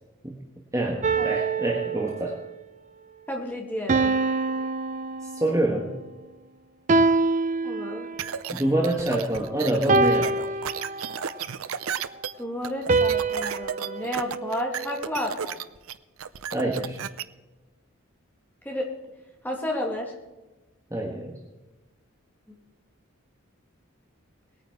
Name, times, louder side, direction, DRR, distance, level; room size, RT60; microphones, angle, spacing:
voice 1, 0.7-2.4 5.2-5.9 8.5-10.6 16.5-17.1 20.9-21.4, right 1 dB, 15° right, 0 dB, 1.4 m, -26 dB
sound 1, 1.0-2.5 3.9-5.7 6.9-8.3 9.9-11.4 12.9-15.1, right 3 dB, 35° right, 0.5 m, -25 dB
voice 2, 3.3-4.1 7.6-8.1 12.4-15.6 18.6-18.9 19.4-20.1, left 1 dB, 10° left, 0 dB, 2.1 m, -31 dB
sound 2, 8.2-17.2, right 7 dB, 85° right, 0.6 m, -33 dB
19.5 x 9.2 x 4.7 m, 1.1 s
head